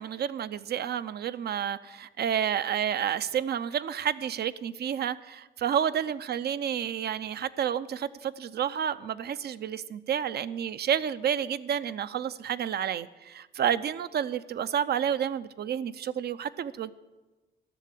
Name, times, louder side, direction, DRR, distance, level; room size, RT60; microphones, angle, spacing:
voice 1, 0.0-16.9, right 9 dB, 55° right, 15 dB, 0.6 m, -30 dB
13.0 x 6.7 x 9.8 m, 1.2 s
cardioid pair, 90°, 20 cm